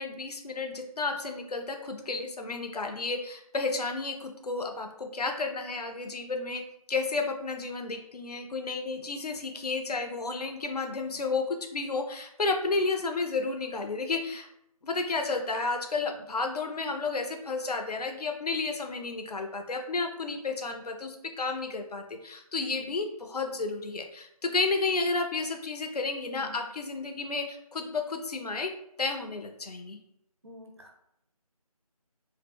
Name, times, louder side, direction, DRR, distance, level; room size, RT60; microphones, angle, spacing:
voice 1, 0.0-6.6 6.9-14.5 14.8-28.7 29.0-30.0, left 3 dB, 85° left, 4 dB, 0.5 m, -32 dB
voice 2, 26.3-26.6 30.4-31.0, left 1 dB, 45° right, 3 dB, 0.4 m, -48 dB
2.1 x 2.0 x 3.5 m, 0.77 s
figure-of-eight pair, 180°, 19 cm